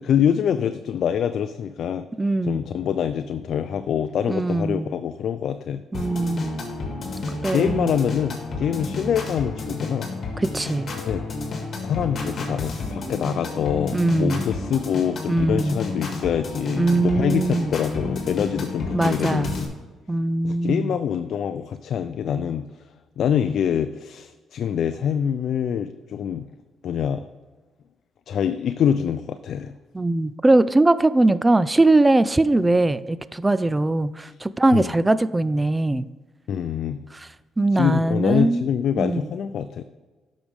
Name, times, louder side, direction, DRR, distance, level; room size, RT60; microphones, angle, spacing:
voice 1, 0.0-2.1 2.4-5.8 7.3-10.1 11.0-11.2 11.8-19.7 20.4-22.8 23.2-26.5 26.8-27.3 28.3-29.7 34.3-34.4 34.7-34.9 36.5-37.0 37.7-39.8, left 8 dB, 65° left, 10 dB, 0.3 m, -25 dB
voice 2, 2.2-2.6 4.3-4.9 5.9-6.7 7.4-7.9 10.4-10.9 13.9-14.4 15.3-15.8 16.8-17.7 18.9-19.6 20.1-20.9 29.9-36.1 37.6-38.7 39.0-39.3, right 2 dB, 15° right, 16 dB, 0.3 m, -21 dB
sound 1, 5.9-19.7, left 3 dB, 50° left, 2.0 m, -31 dB
9.9 x 6.2 x 3.5 m, 1.3 s
cardioid pair, 90°, 0 cm